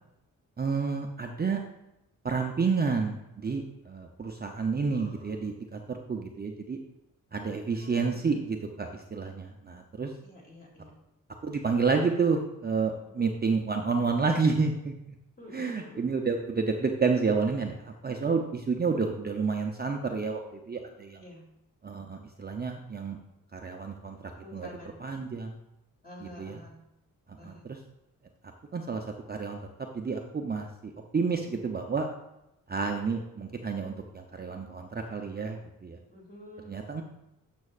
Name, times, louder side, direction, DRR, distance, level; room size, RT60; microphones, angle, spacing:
voice 1, 0.6-1.6 2.2-6.8 7.3-10.1 11.4-14.9 15.5-21.2 21.8-23.2 23.5-24.7 25.0-25.6 26.2-26.6 27.4-27.8 28.7-29.6 29.9-32.1 32.7-36.0 36.7-37.0, right 4 dB, 30° right, 2 dB, 0.6 m, -30 dB
voice 2, 4.8-5.5 7.8-8.2 10.2-10.9 13.2-13.3 15.4-16.0 21.2-21.5 24.4-25.0 26.0-26.8 27.4-27.7 36.1-36.7, left 1 dB, 25° left, -2 dB, 2.6 m, -48 dB
11.0 x 6.2 x 2.4 m, 0.89 s
cardioid pair, 95°, 34 cm